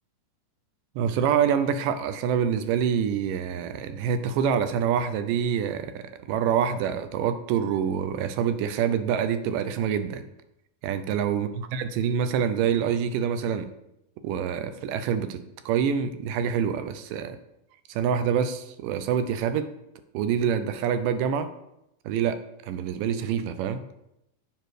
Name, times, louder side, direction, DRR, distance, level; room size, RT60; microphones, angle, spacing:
voice 1, 1.0-10.2 10.8-13.7 14.2-17.4 17.9-19.7 20.1-21.5 22.1-22.4 22.7-23.8, right 8 dB, 85° right, 10 dB, 2.2 m, -26 dB
7.4 x 5.1 x 3.2 m, 0.82 s
omnidirectional pair, 3.8 m